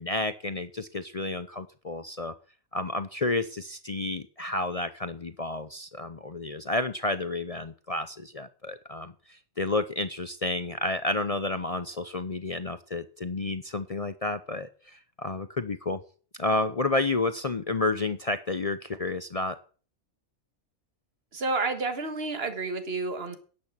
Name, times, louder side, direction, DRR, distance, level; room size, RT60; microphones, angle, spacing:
voice 1, 0.0-2.3 2.7-9.1 9.6-14.7 15.2-16.0 16.4-19.6, left 2 dB, 45° left, 11 dB, 0.5 m, -30 dB
voice 2, 21.3-23.4, right 3 dB, 45° right, 8 dB, 1.8 m, -30 dB
10.5 x 8.6 x 7.4 m, 0.41 s
omnidirectional pair, 1.5 m